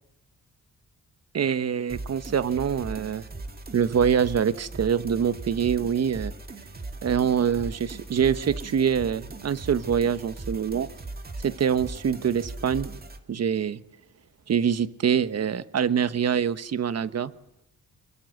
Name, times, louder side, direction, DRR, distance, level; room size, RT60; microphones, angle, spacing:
voice 1, 1.3-3.2 3.7-6.3 7.0-10.9 11.4-12.9 13.3-13.8 14.5-17.3, right 7 dB, 55° right, 13 dB, 1.2 m, -25 dB
sound 1, 1.9-13.2, right 2 dB, 30° right, 2.3 m, -39 dB
24.0 x 22.0 x 7.9 m, 0.84 s
cardioid pair, 90°, 31 cm